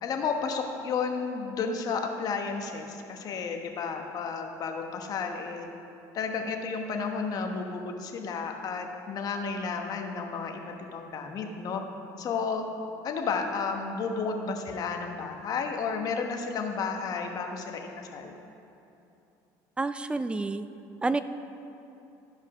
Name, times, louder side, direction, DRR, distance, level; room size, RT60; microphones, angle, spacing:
voice 1, 0.0-5.7 6.1-10.6 10.9-11.8 12.2-12.6 13.0-18.3, left 5 dB, 45° left, 3 dB, 1.1 m, -32 dB
voice 2, 19.8-20.7 21.0-21.2, right 3 dB, 10° right, 12 dB, 0.4 m, -28 dB
13.5 x 5.5 x 5.0 m, 2.8 s
supercardioid pair, 105°, 9 cm